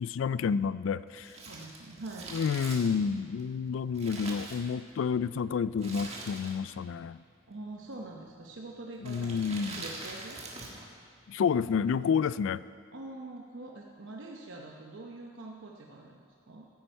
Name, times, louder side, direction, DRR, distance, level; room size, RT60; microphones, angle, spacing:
voice 1, 0.0-1.3 2.3-7.2 9.0-9.8 11.3-12.6, left 6 dB, 65° left, 18 dB, 0.3 m, -29 dB
Crumpling crinkling, 1.1-5.1 5.8-6.8 7.1-7.2 8.0-8.3 9.0-10.9 11.2-11.3, right 2 dB, 30° right, 1.6 m, -43 dB
voice 2, 1.5-2.3 7.5-10.4 12.9-16.2 16.5-16.7, right 2 dB, 65° right, 0 dB, 0.9 m, -44 dB
15.0 x 8.7 x 4.5 m, 2.5 s
head